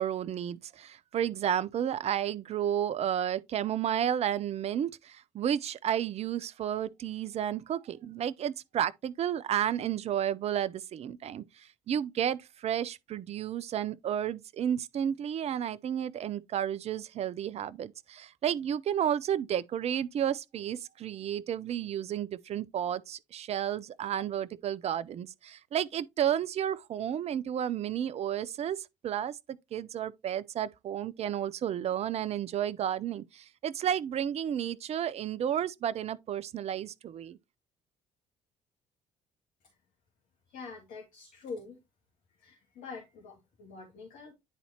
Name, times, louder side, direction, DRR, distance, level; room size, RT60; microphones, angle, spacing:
voice 1, 0.0-11.4 11.9-28.8 29.0-37.4, right 10 dB, 45° right, 0.5 m, -32 dB
voice 2, 40.5-41.8 42.4-44.3, left 4 dB, 65° left, 1.8 m, -45 dB
10.0 x 4.1 x 2.8 m
hypercardioid pair, 55°, 15 cm